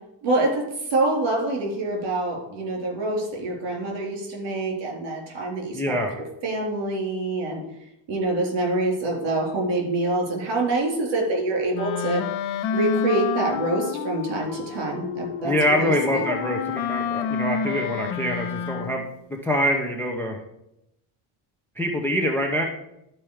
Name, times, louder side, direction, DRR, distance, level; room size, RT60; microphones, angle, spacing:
voice 1, 0.2-7.6 8.1-12.2 12.7-16.2, right 2 dB, 55° right, 0 dB, 3.6 m, -26 dB
voice 2, 5.7-6.1 15.4-19.0 19.4-20.4 21.8-22.6, equal, 5° left, 0 dB, 0.6 m, -24 dB
Wind instrument woodwind instrument, 11.7-19.2, left 7 dB, 70° left, 0.8 m, -29 dB
12.0 x 4.4 x 4.8 m, 0.82 s
cardioid pair, 170°, 50 cm